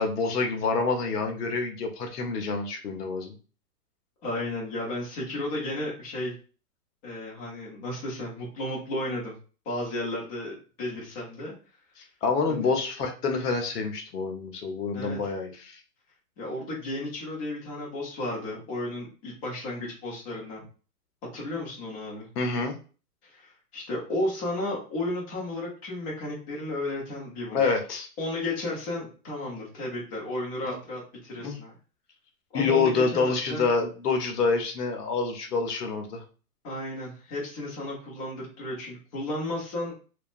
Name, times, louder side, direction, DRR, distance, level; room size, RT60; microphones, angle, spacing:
voice 1, 0.0-3.4 12.0-15.8 22.4-22.8 27.5-28.1 30.7-30.8 31.4-31.6 32.5-36.2, left 4 dB, 80° left, 4 dB, 0.8 m, -27 dB
voice 2, 4.2-6.3 7.0-9.3 9.6-11.5 12.5-12.7 14.9-15.2 16.4-20.7 21.3-22.3 23.2-27.7 28.2-31.7 32.5-33.7 36.6-39.9, left 1 dB, 25° left, -4 dB, 0.8 m, -33 dB
2.7 x 2.2 x 2.4 m, 0.36 s
hypercardioid pair, 155°, 46 cm